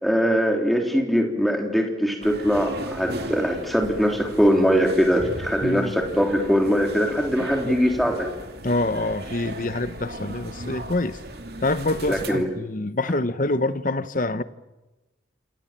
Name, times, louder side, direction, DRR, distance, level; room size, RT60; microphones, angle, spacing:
voice 1, 0.0-8.3 12.1-12.5, equal, ahead, 3.4 m, -21 dB
sound 1, 2.2-12.3, right 1 dB, 55° right, 2.7 m, -37 dB
voice 2, 5.6-5.9 7.6-7.8 8.6-11.2 11.6-14.4, left 2 dB, 45° left, 1.0 m, -26 dB
28.0 x 27.0 x 7.5 m
head